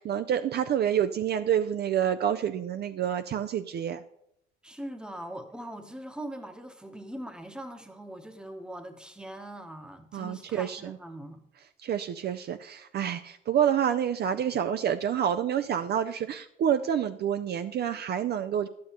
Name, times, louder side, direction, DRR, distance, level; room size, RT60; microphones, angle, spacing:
voice 1, 0.0-4.0 10.1-11.0 11.8-18.7, right 9 dB, 55° right, 10 dB, 0.4 m, -28 dB
voice 2, 4.6-11.4, right 1 dB, 5° right, 6 dB, 0.9 m, -41 dB
11.0 x 8.5 x 2.9 m, 0.75 s
cardioid pair, 90°, 20 cm